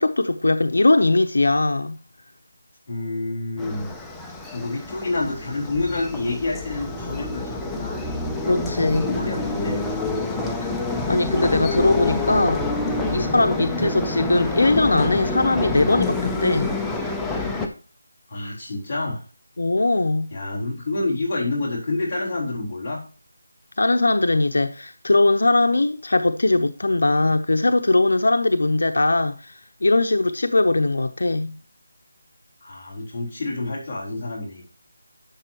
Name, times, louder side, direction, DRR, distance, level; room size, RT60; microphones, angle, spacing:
voice 1, 0.0-2.0 8.4-9.1 11.1-12.7 13.1-16.8 19.6-20.3 23.8-31.6, left 2 dB, 75° left, 0.7 m, -20 dB
voice 2, 2.9-3.9 4.5-8.0 8.7-9.8 11.7-11.9 13.0-13.2 18.3-19.2 20.3-23.0 32.6-34.7, left 2 dB, 15° left, 3.9 m, -28 dB
sound 1, 3.6-17.7, left 2 dB, ahead, 0.5 m, -27 dB
11.5 x 6.9 x 3.0 m
figure-of-eight pair, 175°, 0 cm